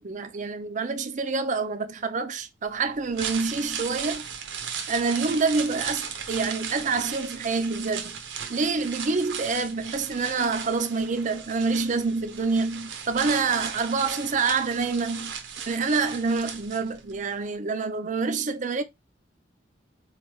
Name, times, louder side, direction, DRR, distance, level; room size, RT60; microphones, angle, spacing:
voice 1, 0.0-4.2 4.9-8.2 8.5-15.3 15.7-18.8, right 4 dB, 40° right, 0.5 m, -27 dB
sound 1, 2.9-17.2 17.5-17.6, right 7 dB, 85° right, 0.8 m, -36 dB
4.3 x 3.2 x 3.0 m
head